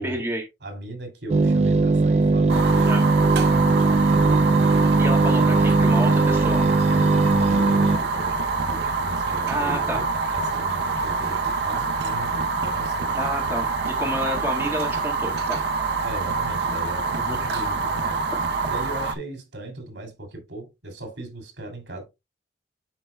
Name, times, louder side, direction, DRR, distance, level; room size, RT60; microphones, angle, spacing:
voice 1, 0.0-0.4 2.8-3.0 5.0-6.6 9.5-10.0 13.1-15.6 17.2-17.4, right 1 dB, 10° right, 1.7 m, -29 dB
voice 2, 0.6-4.8 6.8-13.2 16.0-18.2 18.7-22.0, right 1 dB, 85° right, 2.6 m, -37 dB
sound 1, 1.3-8.0, right 3 dB, 35° right, 0.3 m, -19 dB
Fire, 2.5-19.2, right 4 dB, 70° right, 0.7 m, -26 dB
11.0 x 4.4 x 2.2 m
head